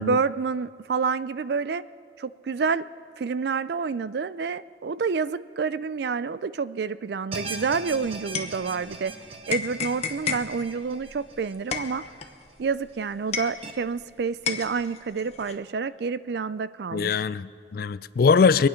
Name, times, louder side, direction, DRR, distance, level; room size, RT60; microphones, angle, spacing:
voice 1, 0.0-1.8 2.2-2.8 3.2-9.1 9.5-12.0 12.6-17.2, right 5 dB, 60° right, 16 dB, 0.4 m, -28 dB
sound 1, 7.3-12.5 12.9-13.0 13.6-13.7, right 3 dB, 30° right, 0.8 m, -40 dB
sound 2, 7.6-9.1 9.5-14.1 14.5-15.5, left 6 dB, 35° left, 0.9 m, -33 dB
voice 2, 16.9-18.7, left 5 dB, 50° left, 17 dB, 0.3 m, -21 dB
23.5 x 9.0 x 5.7 m, 2.1 s
head